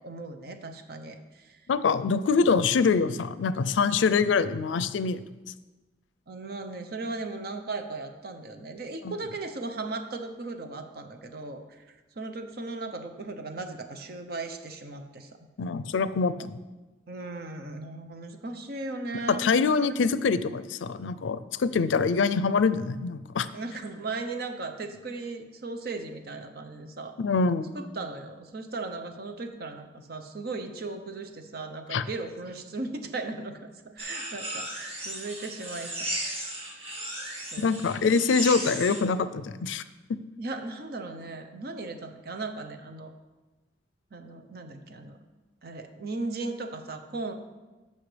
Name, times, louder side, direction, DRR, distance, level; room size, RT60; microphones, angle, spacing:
voice 1, 0.0-1.6 6.3-11.8 12.2-15.3 16.3-16.5 17.1-20.0 23.5-27.2 27.7-35.9 36.9-37.0 37.5-37.7 40.4-43.1 44.1-45.2 45.6-47.3, right 3 dB, 55° right, 6 dB, 0.8 m, -37 dB
voice 2, 1.7-5.2 9.0-9.1 15.6-16.6 19.4-23.5 27.2-27.7 31.9-32.0 37.6-39.8, left 5 dB, 90° left, 14 dB, 0.4 m, -25 dB
sound 1, 34.0-39.0, right 1 dB, 35° right, 1.8 m, -35 dB
14.0 x 5.6 x 3.3 m, 1.2 s
head